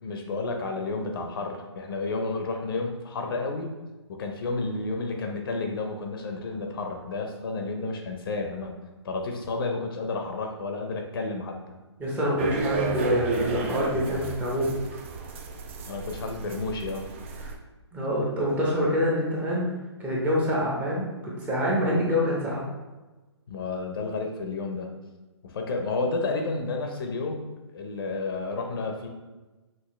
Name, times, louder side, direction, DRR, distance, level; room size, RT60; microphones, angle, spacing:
voice 1, 0.0-3.7 4.1-8.8 9.0-11.8 15.9-17.1 23.5-25.0 25.4-27.5 27.7-29.1, left 3 dB, 55° left, 3 dB, 0.7 m, -31 dB
voice 2, 12.0-14.8 17.4-17.5 17.9-19.7 20.0-21.1 21.4-22.7, equal, 10° right, -5 dB, 0.7 m, -26 dB
sound 1, 12.4-17.5, right 4 dB, 25° right, 0.3 m, -32 dB
5.9 x 2.6 x 3.1 m, 1.2 s
hypercardioid pair, 155°, 15 cm